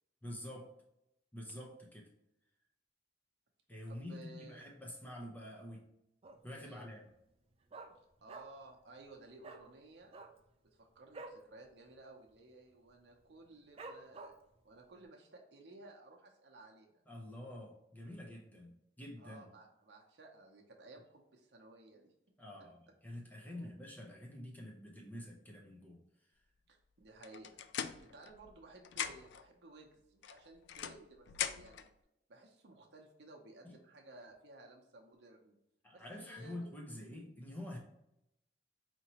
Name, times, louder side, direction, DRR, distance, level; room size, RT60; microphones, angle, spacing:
voice 1, 0.2-0.7 1.3-2.1 3.7-5.9 6.4-7.1 17.1-19.5 22.4-26.3 33.6-33.8 35.8-37.8, left 1 dB, 10° left, -2 dB, 0.6 m, -47 dB
voice 2, 3.9-4.6 6.6-6.9 8.2-10.2 10.7-14.3 14.6-17.0 19.2-22.1 23.5-23.7 26.7-27.6 28.0-31.9 32.3-35.5 35.9-36.9, right 2 dB, 75° right, 1 dB, 0.7 m, -56 dB
Dog, 6.2-6.6 6.9-7.0 7.3-8.7 9.0-9.1 9.4-9.6 10.0-11.4 11.8-12.0 12.2-12.6 13.1-13.2 13.8-14.6 15.0-15.1, right 3 dB, 35° right, 0.4 m, -50 dB
sound 1, 27.2-28.6 28.8-29.5 30.2-31.9, left 9 dB, 85° left, 0.3 m, -41 dB
4.4 x 2.8 x 2.9 m, 0.82 s
head